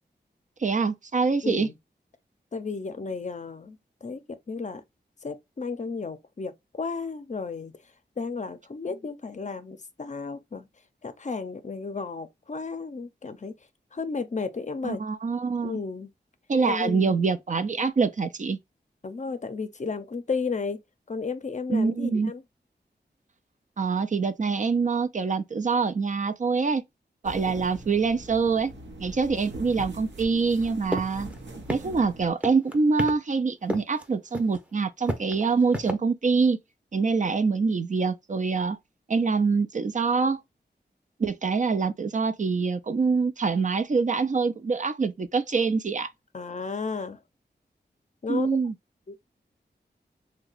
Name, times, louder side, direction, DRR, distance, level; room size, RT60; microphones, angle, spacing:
voice 1, 0.6-1.7 14.8-15.7 16.5-18.6 21.7-22.3 23.8-26.8 27.2-28.7 29.0-31.3 31.7-36.6 36.9-38.8 39.1-40.4 41.2-46.1 48.3-48.7, right 4 dB, 45° right, 0.4 m, -25 dB
voice 2, 1.4-1.8 2.5-4.8 5.2-7.7 8.2-10.7 11.0-13.5 13.9-15.0 15.6-16.1 16.6-17.2 19.0-20.8 21.1-22.4 46.3-47.2 48.2-48.5 49.1-49.2, left 4 dB, 40° left, 0.5 m, -33 dB
sound 1, 27.2-32.3, right 1 dB, 85° right, 0.8 m, -42 dB
sound 2, 30.9-31.0 31.3-31.4 31.7-32.1 32.4-33.1 33.7-34.0 34.3-34.6 35.1-35.9, equal, 10° right, 0.7 m, -29 dB
2.8 x 2.2 x 3.9 m
wide cardioid pair, 65°, 18 cm